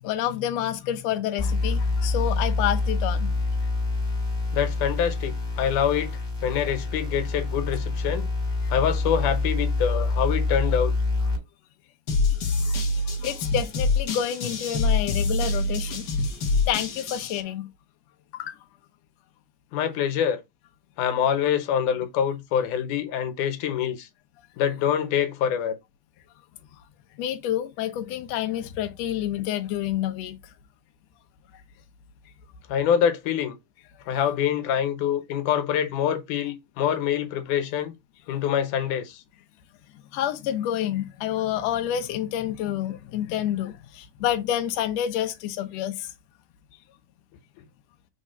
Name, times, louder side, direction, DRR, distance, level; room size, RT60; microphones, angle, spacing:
voice 1, 0.0-3.5 12.6-12.8 13.2-16.1 16.7-17.7 18.3-18.6 27.2-30.4 40.1-46.1, left 11 dB, 75° left, 1.7 m, -28 dB
sound 1, 1.4-11.4, left 3 dB, 15° left, 2.3 m, -26 dB
voice 2, 4.5-8.3 8.7-10.9 19.7-20.4 21.0-24.1 24.6-25.8 32.7-33.5 34.1-37.9 38.3-39.2, left 9 dB, 90° left, 2.5 m, -25 dB
sound 2, 12.1-17.4, left 3 dB, 55° left, 1.2 m, -25 dB
4.6 x 3.7 x 5.6 m
omnidirectional pair, 3.5 m